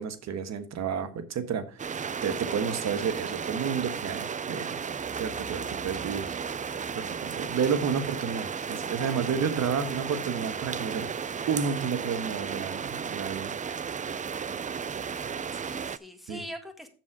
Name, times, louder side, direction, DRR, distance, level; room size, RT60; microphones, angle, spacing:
voice 1, 0.0-4.8 5.2-6.4 6.9-13.5 16.3-16.4, right 6 dB, 60° right, 1.4 m, -31 dB
sound 1, 1.8-16.0, right 6 dB, 25° right, 0.4 m, -34 dB
voice 2, 15.5-16.9, equal, ahead, 1.9 m, -42 dB
7.5 x 7.0 x 4.8 m
cardioid pair, 90°, 30 cm